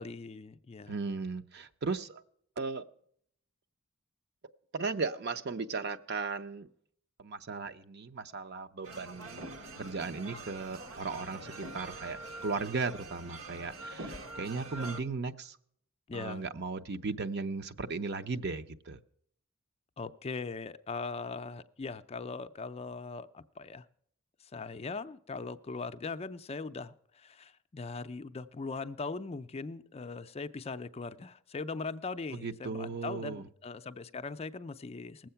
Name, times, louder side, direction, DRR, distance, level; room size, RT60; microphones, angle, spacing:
voice 1, 0.0-1.0 16.1-16.5 20.0-23.9 24.5-35.3, left 4 dB, 30° left, 11 dB, 0.4 m, -40 dB
voice 2, 0.9-2.2 2.6-2.8 4.7-6.7 7.2-9.5 9.8-15.6 16.1-19.0 32.3-33.4, right 4 dB, 55° right, 10 dB, 0.7 m, -36 dB
sound 1, 8.8-15.0, right 2 dB, 75° right, 1.3 m, -44 dB
19.5 x 7.7 x 5.7 m, 0.65 s
head